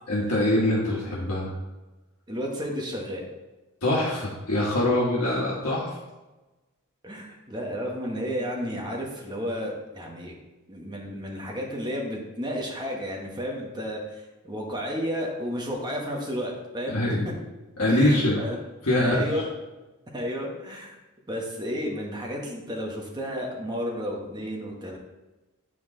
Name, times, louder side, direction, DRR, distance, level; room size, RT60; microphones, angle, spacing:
voice 1, 0.1-1.5 3.8-6.0 16.9-17.2 17.8-18.4 18.8-19.4, left 1 dB, 75° left, -6 dB, 1.4 m, -24 dB
voice 2, 2.3-3.2 7.0-10.4 10.7-16.9 17.2-17.3 17.9-18.6 19.0-19.5 20.1-21.0 21.3-25.0, equal, 20° right, -1 dB, 1.1 m, -32 dB
8.6 x 4.6 x 3.7 m, 1.1 s
head